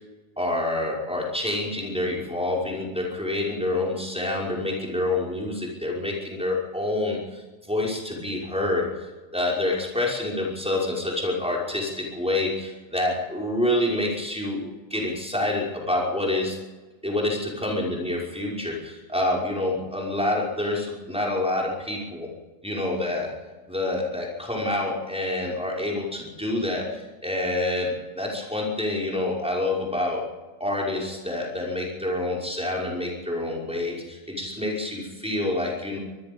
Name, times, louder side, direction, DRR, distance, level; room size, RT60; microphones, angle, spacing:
voice 1, 0.4-8.9 9.3-14.6 14.9-16.6 17.0-22.3 22.6-23.3 23.7-30.3 30.6-36.0, left 2 dB, 5° right, -3 dB, 5.6 m, -27 dB
24.5 x 20.5 x 5.4 m, 1.2 s
omnidirectional pair, 1.2 m